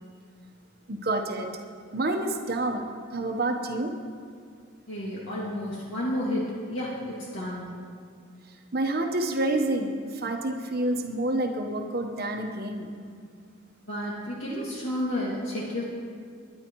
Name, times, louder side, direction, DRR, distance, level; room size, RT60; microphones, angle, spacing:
voice 1, 0.9-1.5 1.9-2.8 3.1-3.9 8.7-12.9, right 2 dB, 50° right, 4 dB, 1.1 m, -28 dB
voice 2, 4.9-7.7 13.8-15.8, left 1 dB, 65° left, -6 dB, 2.2 m, -31 dB
22.5 x 10.5 x 3.1 m, 2.2 s
head